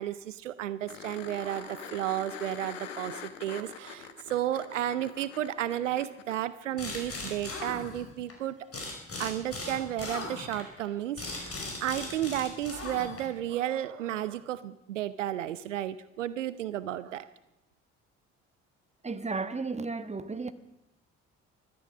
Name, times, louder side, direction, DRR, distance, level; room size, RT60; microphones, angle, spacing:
voice 1, 0.0-8.6 9.2-17.3, right 12 dB, 85° right, 0.5 m, -33 dB
sound 1, 0.9-6.4 9.1-9.2, left 7 dB, 85° left, 1.0 m, -44 dB
sound 2, 6.8-8.3 8.7-13.4, left 2 dB, 40° left, 5.2 m, -38 dB
voice 2, 19.0-20.5, right 4 dB, 20° right, 1.3 m, -33 dB
15.5 x 13.0 x 6.2 m
figure-of-eight pair, 45°, 36 cm